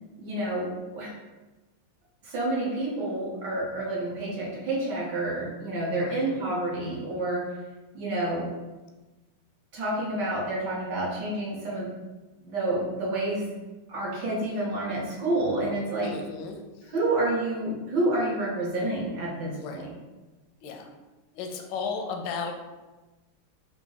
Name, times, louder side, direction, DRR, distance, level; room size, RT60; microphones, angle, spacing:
voice 1, 0.2-1.1 2.2-7.5 7.9-8.5 9.7-12.0 12.4-13.5 13.9-16.2 16.8-19.9, right 2 dB, 65° right, -4 dB, 1.2 m, -29 dB
voice 2, 6.0-6.3 16.0-16.6 19.6-19.9 20.6-20.9 21.3-22.6, left 5 dB, 75° left, 3 dB, 1.1 m, -34 dB
3.9 x 2.6 x 3.8 m, 1.1 s
omnidirectional pair, 2.4 m